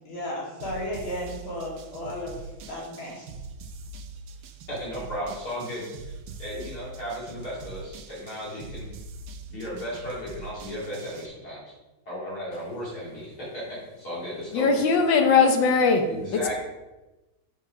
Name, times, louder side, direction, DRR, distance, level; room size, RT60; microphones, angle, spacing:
voice 1, 0.1-2.4 2.7-3.2, left 1 dB, 85° left, -4 dB, 2.9 m, -34 dB
sound 1, 0.6-11.3, right 3 dB, 70° right, 0.8 m, -43 dB
voice 2, 4.7-6.1 6.4-8.9 9.5-11.6 12.1-13.6 14.0-14.7 16.1-16.6, equal, 50° left, -7 dB, 2.7 m, -35 dB
voice 3, 14.5-16.4, left 5 dB, 70° left, 5 dB, 1.5 m, -20 dB
7.1 x 4.8 x 5.9 m, 1.1 s
omnidirectional pair, 2.1 m